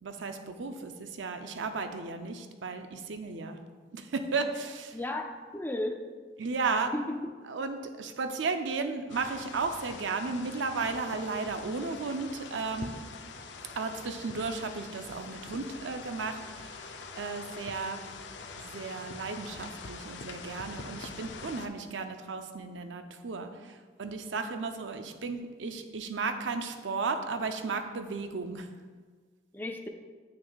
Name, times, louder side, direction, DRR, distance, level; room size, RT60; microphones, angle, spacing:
voice 1, 0.0-3.6 3.9-5.0 6.4-6.9 7.5-12.9 13.8-16.7 17.2-18.0 18.6-23.5 24.0-28.7, right 4 dB, 80° right, 7 dB, 0.5 m, -34 dB
voice 2, 4.9-6.0 6.9-7.3 29.5-29.9, left 1 dB, 10° left, 3 dB, 0.4 m, -34 dB
sound 1, 9.1-21.7, left 4 dB, 70° left, 0.5 m, -44 dB
8.1 x 6.0 x 2.3 m, 1.5 s
head